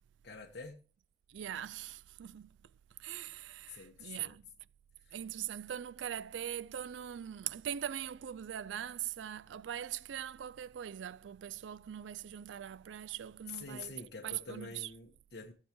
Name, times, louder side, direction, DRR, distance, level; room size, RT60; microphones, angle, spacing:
voice 1, 0.2-0.8 3.7-4.4 5.0-5.2 13.5-15.5, left 4 dB, 60° left, 1.3 m, -47 dB
voice 2, 1.3-2.5 3.0-4.5 5.1-14.9, right 10 dB, 80° right, 0.4 m, -41 dB
15.5 x 7.3 x 3.1 m
head